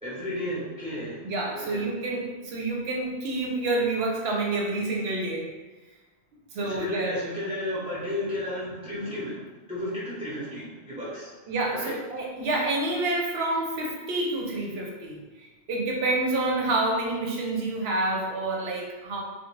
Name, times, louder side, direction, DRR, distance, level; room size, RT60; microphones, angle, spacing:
voice 1, 0.0-1.2 1.5-1.9 6.6-11.3 11.7-11.9, left 1 dB, 5° right, -9 dB, 0.7 m, -33 dB
voice 2, 1.2-5.5 6.5-7.2 11.5-19.2, right 2 dB, 65° right, -1 dB, 0.8 m, -28 dB
2.4 x 2.2 x 3.0 m, 1.2 s
omnidirectional pair, 1.2 m